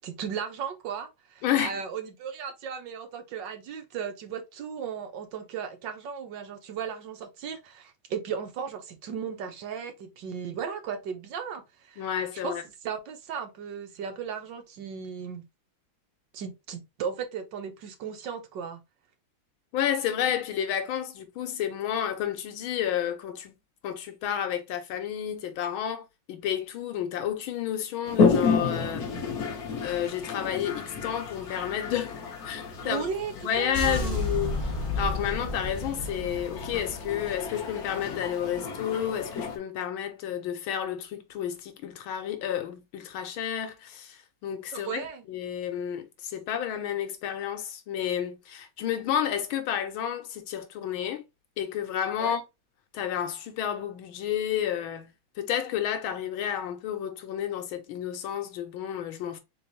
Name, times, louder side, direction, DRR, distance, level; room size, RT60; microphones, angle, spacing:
voice 1, 0.0-12.0 12.4-12.5 12.8-15.4 16.3-18.8 32.8-34.2 44.7-45.2 52.2-52.4, right 7 dB, 65° right, 1.6 m, -36 dB
voice 2, 1.4-1.8 12.0-12.6 19.7-23.5 23.8-29.1 29.8-32.2 32.4-33.1 33.4-34.7 35.0-45.0 45.3-51.2 51.6-52.4 52.9-55.1 55.4-59.4, left 9 dB, 90° left, 1.7 m, -31 dB
Toilet flush, 28.1-39.6, left 5 dB, 55° left, 1.3 m, -31 dB
sound 1, 33.7-37.8, left 2 dB, 20° left, 1.2 m, -32 dB
3.9 x 3.9 x 2.8 m
omnidirectional pair, 2.2 m